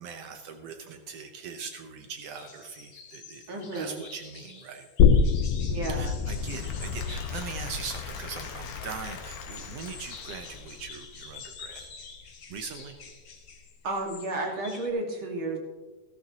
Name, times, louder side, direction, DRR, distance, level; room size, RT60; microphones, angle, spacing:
voice 1, 0.0-4.9 5.9-11.9 12.5-13.0, right 5 dB, 80° right, 6 dB, 1.4 m, -41 dB
sound 1, 2.0-2.1 2.3-14.9, left 5 dB, 50° left, 1.6 m, -47 dB
voice 2, 3.5-4.0 5.7-6.1 13.8-15.6, right 2 dB, 45° right, 0 dB, 2.1 m, -32 dB
sound 2, 5.0-12.3 12.6-12.7, left 6 dB, 85° left, 2.2 m, -27 dB
Applause / Crowd, 6.2-11.2, left 6 dB, 65° left, 1.4 m, -44 dB
16.0 x 13.5 x 2.8 m, 1.3 s
omnidirectional pair, 3.8 m